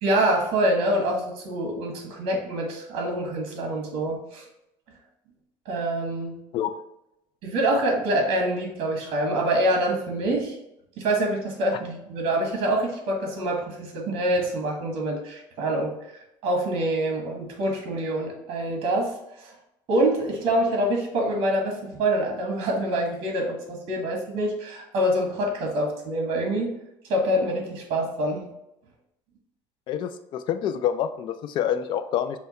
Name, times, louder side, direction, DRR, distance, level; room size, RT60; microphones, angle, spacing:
voice 1, 0.0-4.4 5.6-6.4 7.4-10.5 11.0-15.9 16.4-19.5 19.9-26.7 27.1-28.4, right 1 dB, 60° right, 1 dB, 1.3 m, -25 dB
voice 2, 29.9-32.4, left 9 dB, 50° left, 10 dB, 0.4 m, -27 dB
5.6 x 2.2 x 4.0 m, 0.85 s
cardioid pair, 140°, 11 cm